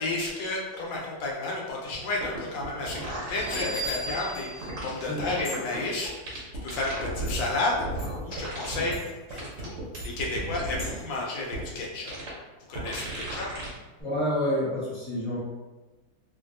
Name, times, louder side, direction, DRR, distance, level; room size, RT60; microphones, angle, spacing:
voice 1, 0.0-8.9 9.3-9.8 10.0-12.1 12.7-13.5, left 2 dB, 80° left, -2 dB, 1.4 m, -32 dB
sound 1, 1.9-2.0 2.2-4.1 4.6-5.8 6.0-7.4 7.7-8.9 9.3-10.9 11.5-11.6 12.1-12.3 12.7-13.7 14.0-14.1, right 2 dB, 60° right, 0.8 m, -35 dB
Bell, 3.3-6.0, right 1 dB, 20° left, 1.3 m, -37 dB
sound 2, 4.2-11.2, left 3 dB, 65° left, 0.9 m, -47 dB
voice 2, 14.0-15.4, left 1 dB, 5° left, -11 dB, 0.8 m, -28 dB
3.0 x 2.5 x 2.5 m, 1.2 s
omnidirectional pair, 2.0 m